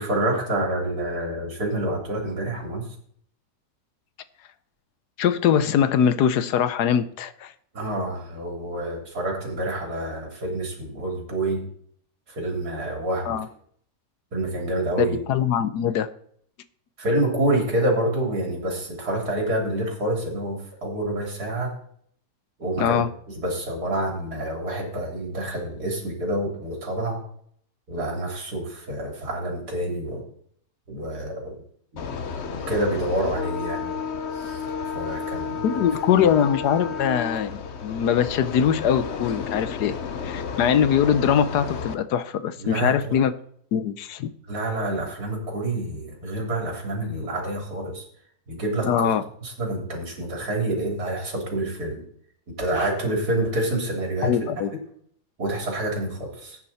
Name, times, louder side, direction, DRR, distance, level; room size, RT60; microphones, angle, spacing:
voice 1, 0.0-2.9 7.7-11.6 12.3-13.4 14.3-15.2 17.0-21.7 22.6-23.0 23.3-27.2 27.9-30.2 30.9-31.6 31.9-34.0 34.3-34.7 34.9-35.8 36.1-36.3 42.6-43.2 44.5-48.0 48.5-49.1 49.4-52.1 52.6-54.4 55.4-56.6, right 1 dB, 70° right, 1 dB, 4.0 m, -27 dB
voice 2, 5.2-7.5 13.2-13.5 15.0-16.1 22.8-23.1 35.6-37.5 37.8-39.9 40.2-43.3 43.7-44.3 48.8-49.2 54.2-54.7, left 8 dB, 80° left, 13 dB, 1.3 m, -22 dB
sound 1, 32.0-41.9, left 6 dB, 50° left, 1.0 m, -32 dB
16.5 x 9.0 x 4.3 m, 0.64 s
omnidirectional pair, 1.7 m